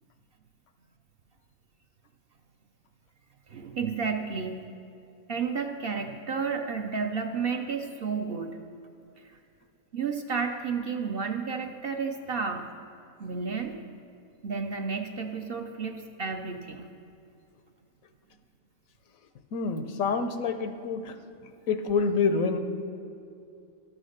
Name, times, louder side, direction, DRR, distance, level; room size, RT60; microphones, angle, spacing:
voice 1, 3.5-4.6 5.3-8.5 9.2-9.3 9.9-12.7 13.2-13.7 14.4-16.9, right 5 dB, 55° right, 4 dB, 0.7 m, -31 dB
voice 2, 19.5-21.2 21.4-22.6, left 4 dB, 85° left, 8 dB, 1.1 m, -27 dB
12.5 x 6.4 x 6.4 m, 2.6 s
omnidirectional pair, 1.4 m